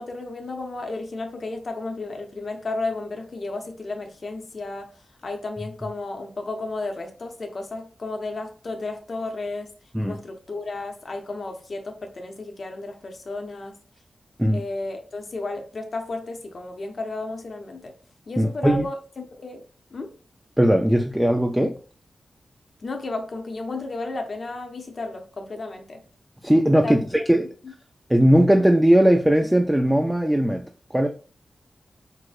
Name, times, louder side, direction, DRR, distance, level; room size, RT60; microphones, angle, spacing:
voice 1, 0.0-9.7 10.0-13.7 14.5-17.9 18.3-19.6 19.9-20.1 22.8-26.0 26.8-27.1 27.6-27.7, left 2 dB, 60° left, 0.6 m, -33 dB
voice 2, 18.4-18.8 20.6-21.8 26.4-27.5 28.1-30.7 30.9-31.1, right 1 dB, 10° right, 0.3 m, -18 dB
4.6 x 2.0 x 2.4 m
cardioid pair, 70°, 0 cm